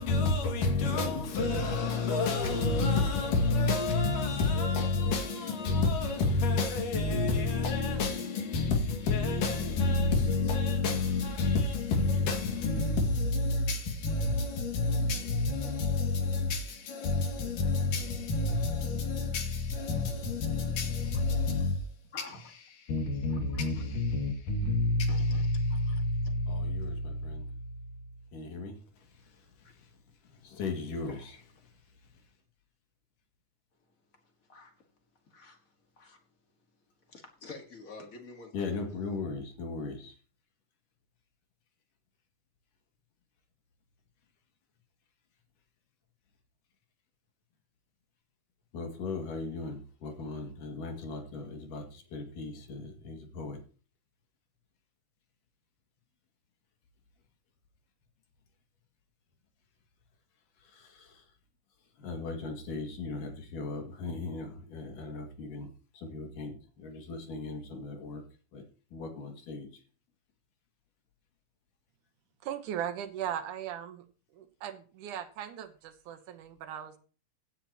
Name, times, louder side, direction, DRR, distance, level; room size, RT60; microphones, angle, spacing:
voice 1, 0.0-21.8 22.9-27.5 28.3-28.7 30.4-31.1 38.5-40.1 48.7-53.6 60.7-61.1 62.0-65.7 65.9-68.2 68.5-68.6 68.9-69.7, left 3 dB, 85° left, 3.7 m, -30 dB
voice 2, 23.1-23.7 25.1-26.0 29.6-29.7 31.1-31.4 34.5-34.7 35.3-36.2 37.1-39.1, left 3 dB, 35° left, 1.6 m, -49 dB
voice 3, 72.4-74.0 74.3-77.0, right 10 dB, 75° right, 2.5 m, -38 dB
16.0 x 9.8 x 2.9 m
omnidirectional pair, 3.7 m